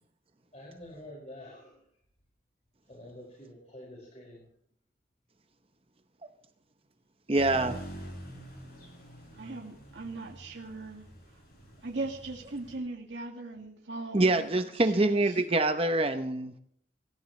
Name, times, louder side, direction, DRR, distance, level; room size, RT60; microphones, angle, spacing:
voice 1, 0.5-1.7 2.9-4.4, left 1 dB, 35° left, -3 dB, 5.5 m, -47 dB
sound 1, 7.3-12.8, right 1 dB, 50° left, 7.8 m, -46 dB
voice 2, 7.3-7.8 14.1-16.5, right 2 dB, 30° right, 8 dB, 0.8 m, -25 dB
voice 3, 9.3-11.1 11.8-15.4, right 2 dB, 70° right, 0 dB, 2.1 m, -39 dB
25.0 x 15.5 x 3.2 m, 0.69 s
head